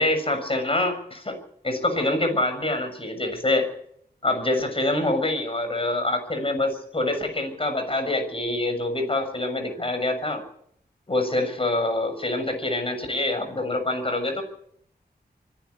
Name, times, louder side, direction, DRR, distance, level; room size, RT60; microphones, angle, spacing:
voice 1, 0.0-1.4 1.6-3.7 4.2-10.4 11.1-14.4, left 2 dB, 35° left, 6 dB, 6.9 m, -25 dB
24.5 x 11.5 x 9.7 m, 0.68 s
wide cardioid pair, 75°, 17 cm